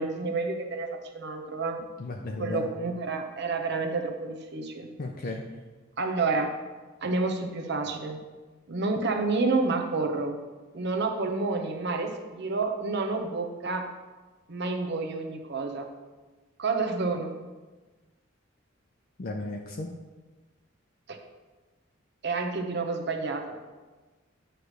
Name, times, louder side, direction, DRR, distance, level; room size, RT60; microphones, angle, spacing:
voice 1, 0.0-1.8 2.4-4.9 6.0-6.5 7.0-8.2 8.7-10.4 10.7-13.9 14.5-15.9 16.6-17.4 21.1-21.2 22.2-23.5, right 3 dB, 60° right, 4 dB, 0.8 m, -29 dB
voice 2, 2.0-2.7 5.0-5.4 19.2-19.9, left 2 dB, 50° left, 1 dB, 0.6 m, -34 dB
9.1 x 3.3 x 6.4 m, 1.3 s
head